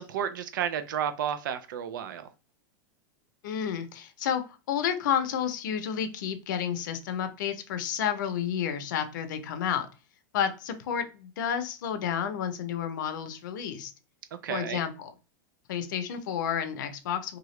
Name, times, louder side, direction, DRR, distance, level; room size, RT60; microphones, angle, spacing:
voice 1, 0.0-2.3 14.4-14.8, right 9 dB, 90° right, 0.4 m, -32 dB
voice 2, 3.4-4.4 4.7-9.9 10.3-13.9 14.5-15.1 15.7-17.4, left 8 dB, 75° left, 0.6 m, -30 dB
2.8 x 2.4 x 3.1 m
supercardioid pair, 145°, 10 cm